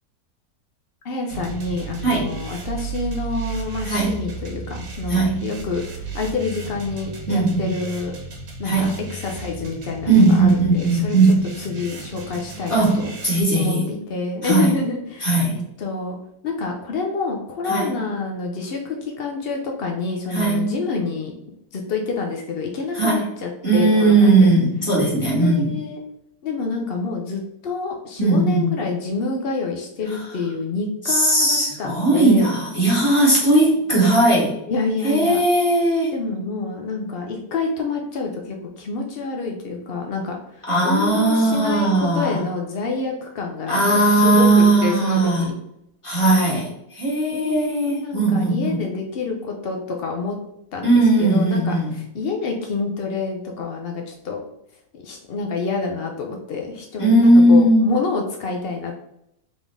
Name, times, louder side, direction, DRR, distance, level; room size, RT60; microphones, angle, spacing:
voice 1, 1.0-8.1 8.6-11.2 11.6-13.1 13.5-16.2 16.4-21.3 21.7-24.5 25.3-26.0 26.4-32.6 34.7-35.4 36.1-45.5 47.3-50.4 50.7-50.9 51.2-54.4 54.9-58.9, left 4 dB, 80° left, 1 dB, 0.5 m, -28 dB
sound 1, 1.3-13.4, right 5 dB, 90° right, 1.6 m, -34 dB
voice 2, 2.0-2.3 3.8-4.2 5.1-5.5 7.3-7.7 8.6-9.0 10.1-11.5 12.7-13.8 14.4-14.7 15.2-15.6 17.7-17.9 20.3-20.7 22.9-23.2 23.6-25.7 28.2-28.7 30.1-30.3 31.0-34.6 35.0-36.1 40.7-42.4 43.7-45.5 46.0-48.8 50.8-51.9 57.0-57.9, right 2 dB, 20° left, -6 dB, 1.8 m, -18 dB
3.8 x 3.7 x 3.5 m, 0.78 s
omnidirectional pair, 1.8 m